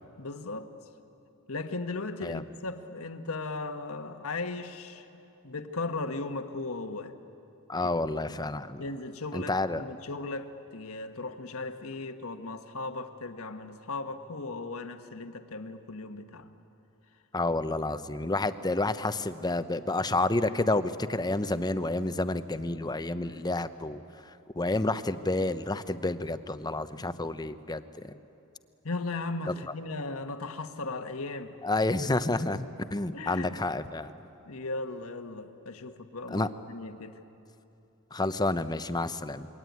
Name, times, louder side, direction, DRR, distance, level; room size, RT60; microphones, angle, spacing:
voice 1, 0.2-0.7 1.5-5.1 5.4-7.1 7.8-8.4 8.8-16.5 26.9-27.1 28.8-31.6 32.5-32.6 33.1-33.6 34.5-37.2, left 3 dB, 70° left, 7 dB, 1.4 m, -37 dB
voice 2, 7.7-8.8 9.3-9.8 17.3-24.0 24.6-27.8 31.6-34.1 36.3-36.5 38.1-39.5, left 2 dB, 20° left, 11 dB, 0.8 m, -29 dB
27.0 x 23.0 x 9.5 m, 2.9 s
head